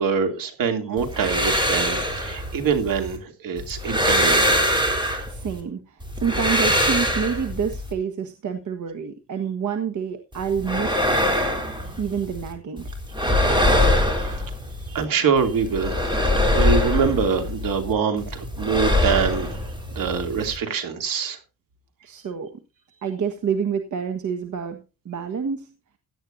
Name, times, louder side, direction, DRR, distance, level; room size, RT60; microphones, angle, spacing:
voice 1, 0.0-4.8 13.5-14.4 14.9-19.6 19.9-21.4, right 6 dB, 80° right, 3.0 m, -25 dB
sound 1, 1.0-3.2 3.6-5.6 6.0-7.9 10.3-12.5 12.8-15.0 15.4-17.9 18.2-20.6, left 1 dB, 15° right, 3.6 m, -23 dB
voice 2, 5.3-11.0 12.0-12.9 22.0-22.6 23.0-25.7, right 7 dB, 65° right, 1.6 m, -28 dB
17.0 x 11.0 x 2.7 m
wide cardioid pair, 140°, 33 cm